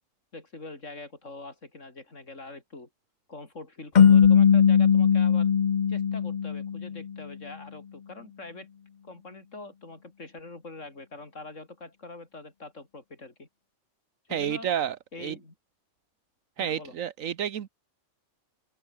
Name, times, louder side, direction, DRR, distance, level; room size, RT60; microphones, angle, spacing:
voice 1, 0.3-2.9 3.3-5.5 5.9-8.7 9.0-13.5 14.3-14.7 15.1-15.5 16.6-16.9, left 3 dB, 70° left, 4.8 m, -44 dB
sound 1, 4.0-7.1, left 7 dB, 40° left, 0.8 m, -19 dB
voice 2, 14.3-15.4 16.6-17.7, right 9 dB, 85° right, 1.4 m, -30 dB
omnidirectional pair, 1.4 m